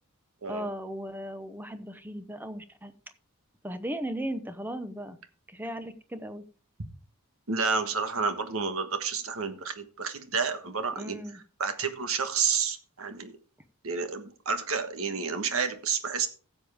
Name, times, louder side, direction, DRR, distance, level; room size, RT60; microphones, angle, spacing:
voice 1, 0.5-2.9 3.6-5.2 5.5-6.4 11.0-11.4, right 1 dB, 10° right, 10 dB, 0.8 m, -36 dB
voice 2, 7.5-11.2 11.6-13.4 13.8-16.3, right 5 dB, 70° right, 8 dB, 1.4 m, -30 dB
15.5 x 7.2 x 3.5 m, 0.39 s
head